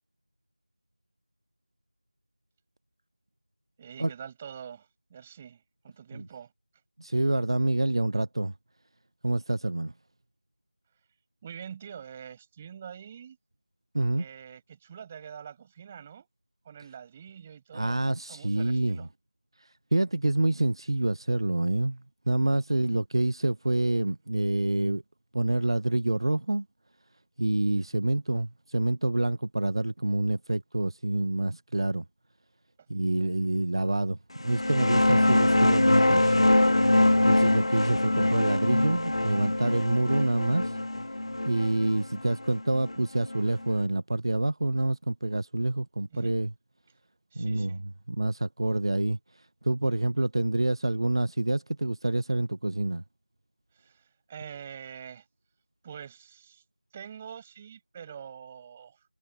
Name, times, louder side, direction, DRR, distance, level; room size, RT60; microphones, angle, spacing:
voice 1, 3.8-6.5 11.4-13.4 14.2-16.3 16.6-19.1 22.8-23.0 46.1-46.3 47.3-47.8 53.7-55.2 55.8-56.6 56.9-59.0, right 8 dB, 10° right, 6.5 m, -45 dB
voice 2, 7.0-8.5 9.2-9.9 13.9-14.2 17.7-19.1 19.6-25.0 25.3-26.7 27.4-32.0 32.9-34.2 34.4-36.4 37.2-40.8 41.4-46.5 47.3-53.0, right 2 dB, 40° right, 0.8 m, -27 dB
sound 1, 34.4-43.7, left 1 dB, 45° left, 1.6 m, -24 dB
figure-of-eight pair, 175°, 4 cm